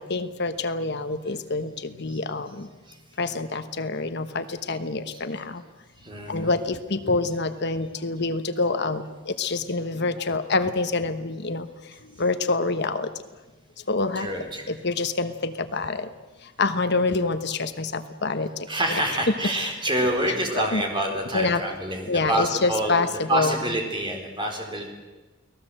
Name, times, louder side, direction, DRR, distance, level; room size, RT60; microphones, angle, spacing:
voice 1, 0.0-2.7 3.2-5.6 6.3-13.1 13.9-16.1 16.4-19.0 20.5-20.8 21.3-21.7 22.1-23.5, left 3 dB, 50° left, 10 dB, 1.1 m, -27 dB
voice 2, 6.0-6.5 14.2-14.7 18.7-23.0 23.3-24.9, right 1 dB, 20° right, 2 dB, 4.2 m, -27 dB
29.5 x 19.0 x 7.8 m, 1.2 s
head